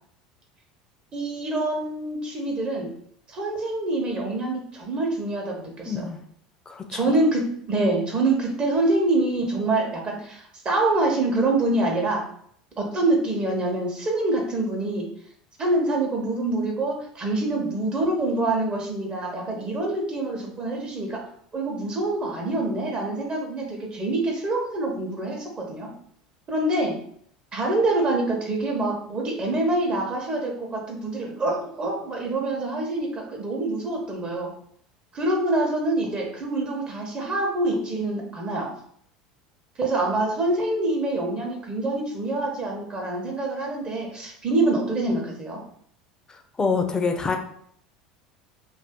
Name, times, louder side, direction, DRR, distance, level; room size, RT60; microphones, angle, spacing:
voice 1, 1.1-2.9 3.3-6.1 6.9-12.2 12.8-15.1 15.6-21.3 21.5-25.9 26.5-27.0 27.5-34.5 35.1-38.7 39.8-45.6, right 2 dB, 35° right, 0 dB, 0.9 m, -25 dB
voice 2, 5.9-6.2 6.7-7.0 46.6-47.4, left 4 dB, 20° left, 4 dB, 0.5 m, -25 dB
2.6 x 2.6 x 3.5 m, 0.65 s
hypercardioid pair, 75°, 3 cm